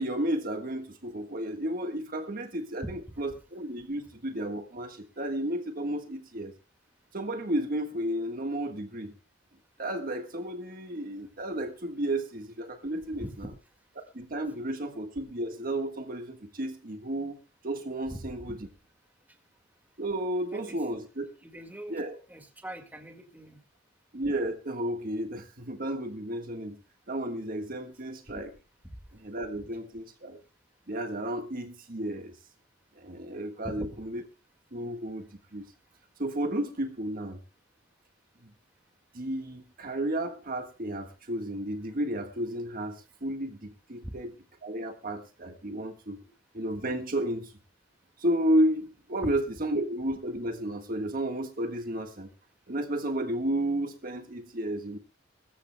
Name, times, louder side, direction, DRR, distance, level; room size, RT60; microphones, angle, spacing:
voice 1, 0.0-6.5 7.1-9.2 9.8-13.5 14.1-17.4 17.6-18.6 20.0-21.3 21.9-22.2 24.1-26.8 27.1-28.5 29.1-30.4 30.9-32.3 33.0-34.2 34.7-35.7 36.2-37.4 39.1-44.3 44.6-46.2 46.5-47.5 48.2-52.3 52.7-55.0, right 1 dB, 50° right, 5 dB, 1.6 m, -32 dB
voice 2, 13.2-13.5 18.1-18.5 20.5-20.8 21.4-22.0 22.3-23.6 33.6-34.0 44.0-44.2 46.2-46.3 49.2-49.3, right 1 dB, 10° right, 4 dB, 2.0 m, -41 dB
22.0 x 14.0 x 2.3 m, 0.32 s
head